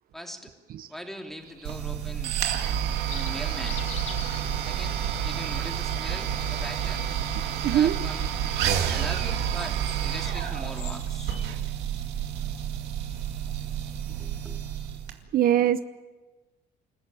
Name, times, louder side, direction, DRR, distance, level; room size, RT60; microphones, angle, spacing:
voice 1, 0.1-0.5 0.9-2.4 2.9-3.8 4.6-7.1 7.7-8.4 8.8-11.3 14.2-14.6, equal, ahead, 3 dB, 3.1 m, -41 dB
sound 1, 1.4-11.5, left 5 dB, 45° left, 3.5 m, -47 dB
sound 2, 1.6-15.1, right 9 dB, 90° right, 2.4 m, -29 dB
voice 2, 7.6-8.0 15.3-15.8, right 11 dB, 60° right, 12 dB, 0.8 m, -22 dB
27.5 x 15.0 x 9.1 m, 1.3 s
cardioid pair, 105°, 17 cm